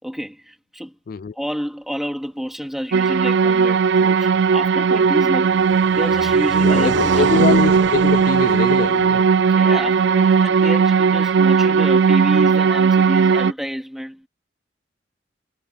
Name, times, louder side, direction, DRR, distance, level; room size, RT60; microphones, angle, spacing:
voice 1, 0.0-1.0 1.3-5.6 5.9-7.4 9.5-14.3, equal, ahead, 2.5 m, -29 dB
sound 1, 2.9-13.5, right 6 dB, 60° right, 0.4 m, -17 dB
Car passing by, 4.0-11.2, right 3 dB, 80° right, 1.2 m, -32 dB
voice 2, 6.6-9.3, left 5 dB, 50° left, 0.3 m, -23 dB
head